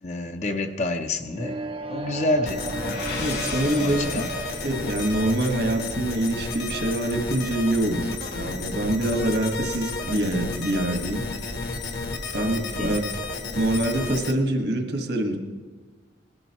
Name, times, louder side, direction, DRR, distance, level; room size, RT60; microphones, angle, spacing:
voice 1, 0.0-1.6 1.9-2.7 3.8-4.3 12.8-13.0, left 2 dB, 40° left, 6 dB, 0.6 m, -28 dB
sound 1, 1.3-7.2, right 1 dB, 30° right, 0.5 m, -35 dB
sound 2, 2.3-6.2, left 3 dB, 85° left, 4.1 m, -37 dB
sound 3, 2.5-14.3, left 3 dB, 55° left, 1.2 m, -32 dB
voice 2, 3.2-4.0 4.6-11.3 12.3-13.0 13.5-15.4, right 1 dB, 60° right, 3 dB, 1.4 m, -25 dB
19.0 x 12.0 x 3.0 m, 1.4 s
head